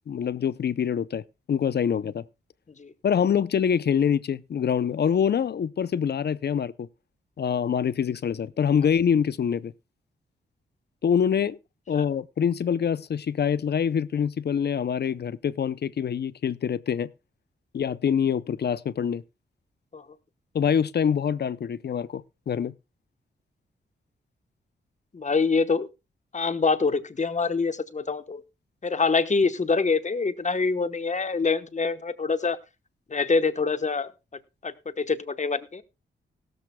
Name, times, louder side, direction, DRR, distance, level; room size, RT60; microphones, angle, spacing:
voice 1, 0.1-1.2 1.5-2.2 3.0-6.9 7.4-9.7 11.0-11.6 11.9-17.1 17.7-19.2 20.5-22.7, left 7 dB, 60° left, 0.6 m, -25 dB
voice 2, 25.1-25.9 26.3-28.4 28.8-32.6 33.1-34.1 34.6-35.8, left 4 dB, 40° left, 1.1 m, -25 dB
16.5 x 13.0 x 2.2 m
cardioid pair, 70°, 19 cm